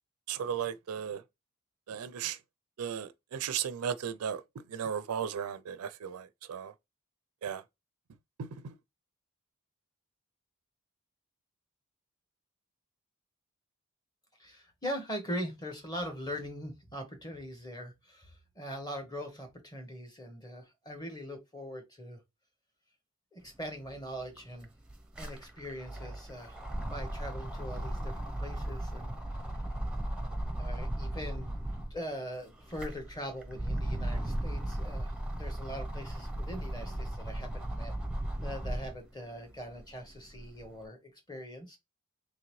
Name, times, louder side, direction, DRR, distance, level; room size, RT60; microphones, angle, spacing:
voice 1, 0.3-1.2 1.9-2.4 2.8-4.4 4.7-6.7 7.4-7.6 8.6-8.7, right 8 dB, 80° right, 0.4 m, -35 dB
voice 2, 14.4-22.2 23.3-24.7 25.2-29.1 30.6-31.6 31.9-37.9 38.4-41.8, equal, 20° left, 1.1 m, -41 dB
sound 1, 23.9-24.0 24.2-32.0 32.5-39.0 39.5-40.7, right 1 dB, 5° right, 0.6 m, -36 dB
3.8 x 3.2 x 3.0 m
head